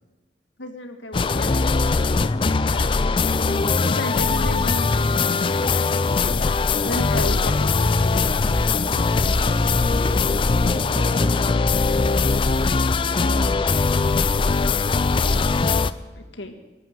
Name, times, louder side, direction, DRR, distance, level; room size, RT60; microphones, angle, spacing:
voice 1, 0.6-3.0 3.8-8.4 16.2-16.5, left 1 dB, 85° left, 6 dB, 1.7 m, -34 dB
sound 1, 1.1-15.9, left 4 dB, 30° left, 0.4 m, -21 dB
voice 2, 3.2-4.3 9.7-11.9 12.2-12.3, equal, ahead, -3 dB, 4.3 m, -38 dB
sound 2, 6.1-15.6, equal, 70° right, 3.6 m, -36 dB
19.0 x 8.2 x 7.7 m, 1.2 s
head